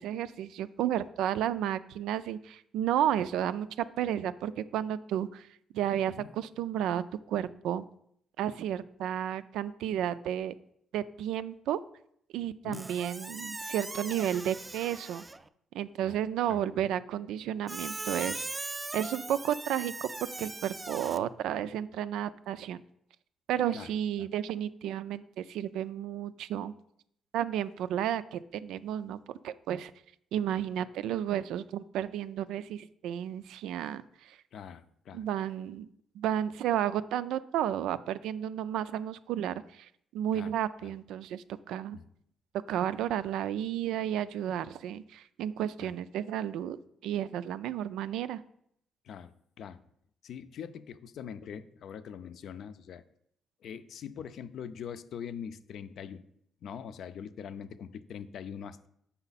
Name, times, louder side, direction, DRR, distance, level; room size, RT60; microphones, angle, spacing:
voice 1, 0.0-3.7 4.0-5.5 5.7-7.8 8.4-10.5 10.9-11.8 12.3-15.2 15.7-18.4 18.9-20.1 20.4-22.8 23.5-26.7 27.3-29.2 29.4-29.9 30.3-34.4 35.1-35.9 36.2-42.0 42.7-48.4, right 10 dB, 85° right, 15 dB, 0.3 m, -32 dB
Squeak, 12.7-15.5 17.7-21.2, right 2 dB, 20° right, 0.4 m, -40 dB
voice 2, 16.5-16.9 23.7-23.9 24.2-24.3 34.5-35.2 40.3-40.5 40.8-40.9 41.9-42.0 45.8-45.9 49.0-49.3 49.6-49.8 50.2-53.0 53.6-56.2 56.6-58.9, left 8 dB, 70° left, 12 dB, 0.5 m, -43 dB
7.0 x 5.5 x 4.1 m, 0.70 s
cardioid pair, 90°, 0 cm